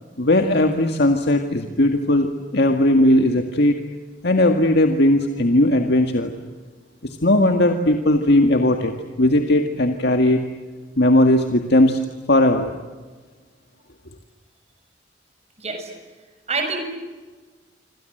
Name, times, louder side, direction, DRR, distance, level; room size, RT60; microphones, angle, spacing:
voice 1, 0.2-3.8 4.2-6.3 7.2-10.4 11.0-12.0 12.3-12.7, left 1 dB, 65° left, 4 dB, 2.0 m, -17 dB
voice 2, 15.6-15.9 16.5-16.8, right 3 dB, 35° right, 5 dB, 7.0 m, -26 dB
26.5 x 26.5 x 8.0 m, 1.3 s
head